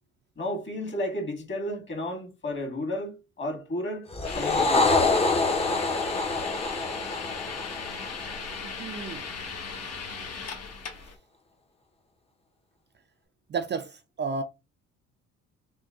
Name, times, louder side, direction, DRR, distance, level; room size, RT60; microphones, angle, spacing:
voice 1, 0.4-5.0, left 1 dB, 40° left, 1.9 m, -33 dB
sound 1, 4.1-8.7, left 3 dB, 20° left, 0.8 m, -26 dB
sound 2, 4.2-11.1, left 5 dB, 55° left, 1.2 m, -37 dB
voice 2, 8.6-9.3 13.5-14.4, right 5 dB, 35° right, 0.4 m, -32 dB
3.6 x 2.2 x 3.6 m
cardioid pair, 90°, 30 cm